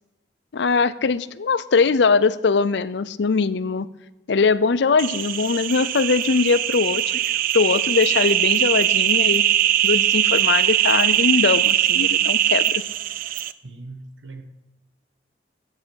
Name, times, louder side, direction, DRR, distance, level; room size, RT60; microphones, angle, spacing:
voice 1, 0.5-3.9 4.3-7.0 7.5-9.4 9.8-12.8, left 4 dB, 70° left, 0.5 m, -21 dB
sound 1, 5.0-13.5, right 12 dB, 50° right, 0.4 m, -21 dB
voice 2, 13.6-14.4, right 3 dB, 90° right, 1.4 m, -39 dB
14.0 x 7.6 x 6.3 m
head